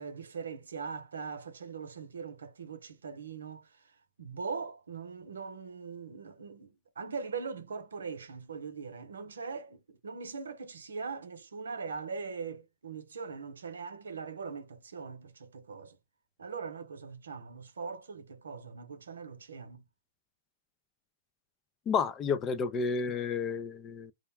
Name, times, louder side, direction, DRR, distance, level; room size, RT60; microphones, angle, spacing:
voice 1, 0.0-3.9 4.2-16.0 16.4-19.8, right 5 dB, 85° right, 0.7 m, -41 dB
voice 2, 21.9-24.1, left 5 dB, 25° left, 0.4 m, -31 dB
2.4 x 2.1 x 3.2 m
hypercardioid pair, 125°, 0 cm